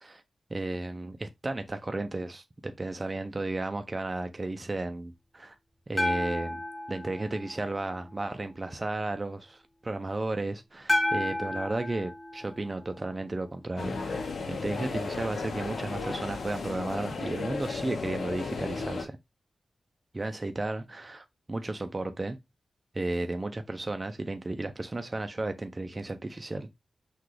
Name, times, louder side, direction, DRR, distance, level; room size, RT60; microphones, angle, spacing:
voice 1, 0.5-5.6 5.9-19.2 20.1-22.4 22.9-26.8, right 2 dB, 25° right, 0.4 m, -34 dB
sound 1, 6.0-8.2 10.9-13.3, left 1 dB, 25° left, 1.7 m, -32 dB
sound 2, 13.8-19.1, left 4 dB, 80° left, 0.8 m, -34 dB
5.9 x 2.3 x 3.2 m
wide cardioid pair, 145°, 0 cm